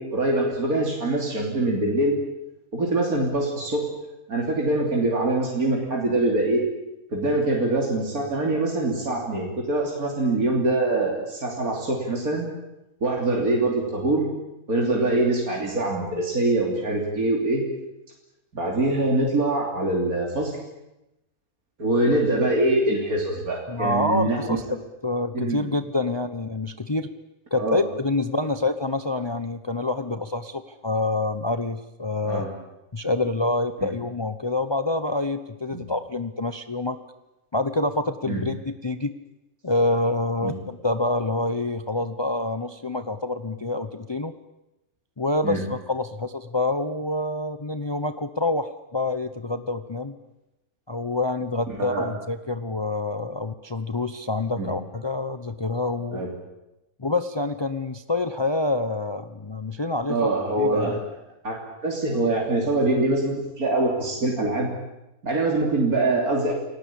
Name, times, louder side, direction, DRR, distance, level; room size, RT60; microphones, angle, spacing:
voice 1, 0.0-2.2 2.7-3.8 4.3-6.6 7.1-12.5 13.0-14.3 14.7-17.6 18.5-20.6 21.8-24.6 25.3-25.7 27.6-27.8 32.2-32.5 33.8-33.9 35.7-35.8 38.3-38.4 40.4-40.5 45.4-45.6 51.7-52.1 54.6-54.7 56.1-56.3 60.1-61.0 61.4-64.7 65.2-66.5, right 2 dB, 85° right, -1 dB, 3.7 m, -24 dB
voice 2, 23.7-24.6 25.0-27.1 27.5-32.5 32.9-37.0 37.5-39.1 39.6-44.3 45.2-50.2 50.9-56.2 57.0-60.3 60.6-61.0, left 2 dB, 25° left, 10 dB, 0.8 m, -27 dB
29.5 x 18.5 x 8.7 m, 0.94 s
omnidirectional pair, 1.5 m